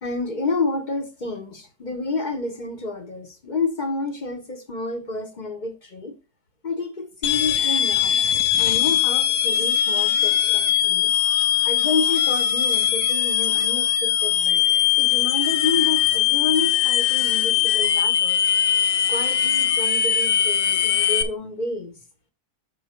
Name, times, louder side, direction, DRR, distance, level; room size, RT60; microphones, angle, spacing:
voice 1, 0.0-6.2 6.6-8.2 8.5-11.1 11.6-14.6 15.0-18.4 19.1-22.0, left 3 dB, 35° left, 0.8 m, -29 dB
sound 1, 7.2-21.2, left 10 dB, 65° left, 0.9 m, -21 dB
6.1 x 5.6 x 4.4 m
omnidirectional pair, 1.8 m